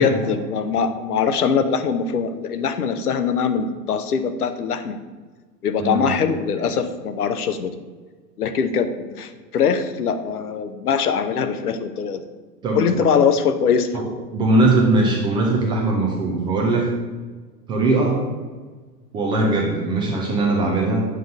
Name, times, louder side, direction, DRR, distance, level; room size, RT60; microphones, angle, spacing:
voice 1, 0.0-5.0 5.6-7.7 8.4-12.2 12.7-13.9, left 6 dB, 65° left, 9 dB, 0.9 m, -22 dB
voice 2, 5.8-6.1 12.6-12.9 13.9-14.0 14.3-16.9 17.7-18.2 19.1-21.1, right 2 dB, 10° right, -1 dB, 0.5 m, -20 dB
7.8 x 3.8 x 6.4 m, 1.4 s
figure-of-eight pair, 105°, 49 cm